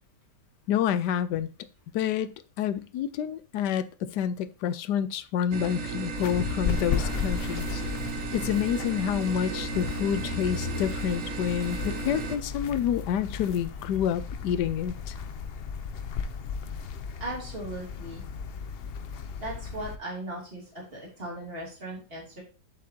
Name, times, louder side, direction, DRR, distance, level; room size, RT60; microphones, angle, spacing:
voice 1, 0.7-1.5 1.9-7.8 8.3-15.1, left 9 dB, 90° left, 14 dB, 1.3 m, -28 dB
sound 1, 5.5-12.4, right 5 dB, 55° right, 1.1 m, -34 dB
sound 2, 6.2-20.0, left 6 dB, 70° left, 0.5 m, -35 dB
voice 2, 17.2-18.2 19.4-22.4, right 1 dB, 35° right, -3 dB, 3.3 m, -38 dB
7.6 x 7.4 x 2.8 m, 0.33 s
omnidirectional pair, 1.8 m